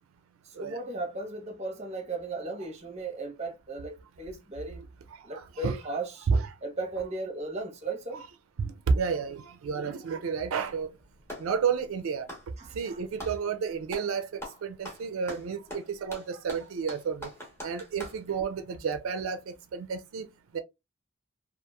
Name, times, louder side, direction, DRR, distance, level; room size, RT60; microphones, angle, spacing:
voice 1, 0.6-4.8 5.2-6.3 6.6-8.2 12.6-13.0, right 3 dB, 30° right, 0.6 m, -36 dB
voice 2, 5.1-5.8 6.3-6.5 8.6-10.9 11.4-12.3 12.7-17.3 17.6-20.6, right 5 dB, 80° right, 0.4 m, -31 dB
Clapping, 10.7-11.6 12.2-13.4 13.9-14.1 14.4-18.2, equal, 10° left, 0.9 m, -42 dB
2.8 x 2.4 x 2.2 m
head